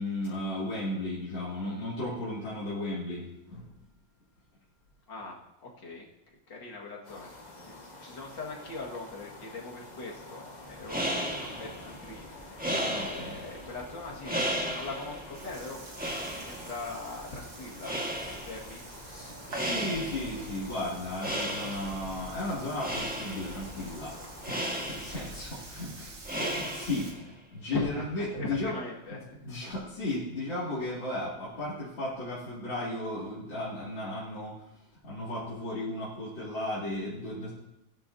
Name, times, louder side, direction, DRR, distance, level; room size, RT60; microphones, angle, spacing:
voice 1, 0.0-3.7 12.7-13.4 19.1-24.2 24.5-28.8 29.1-37.5, left 2 dB, 85° left, -9 dB, 3.3 m, -35 dB
voice 2, 5.1-6.1 6.5-7.3 7.6-12.3 13.0-18.8 27.7-28.0 28.3-29.2, left 2 dB, 70° left, -2 dB, 2.6 m, -41 dB
sound 1, 7.0-24.6, left 2 dB, 25° left, 1.4 m, -48 dB
sound 2, 10.7-27.3, equal, 5° right, 1.4 m, -36 dB
Burping eructation, 14.0-27.1, right 3 dB, 80° right, 2.5 m, -48 dB
18.0 x 10.5 x 2.8 m, 0.87 s
omnidirectional pair, 2.0 m